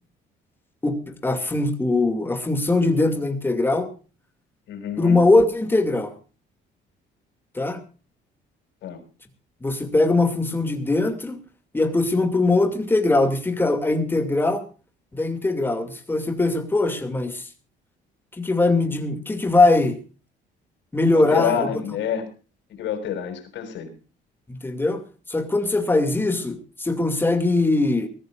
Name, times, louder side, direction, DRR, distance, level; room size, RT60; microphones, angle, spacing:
voice 1, 0.8-3.9 5.0-6.1 7.5-7.8 9.6-11.4 11.7-14.6 15.1-17.4 18.4-20.0 20.9-21.7 24.6-25.0 25.3-28.1, left 2 dB, 10° left, 6 dB, 2.5 m, -21 dB
voice 2, 4.7-5.2 8.8-9.0 21.1-22.3 22.8-23.9, left 8 dB, 70° left, 5 dB, 6.2 m, -27 dB
23.0 x 15.0 x 2.5 m, 0.35 s
cardioid pair, 150°, 19 cm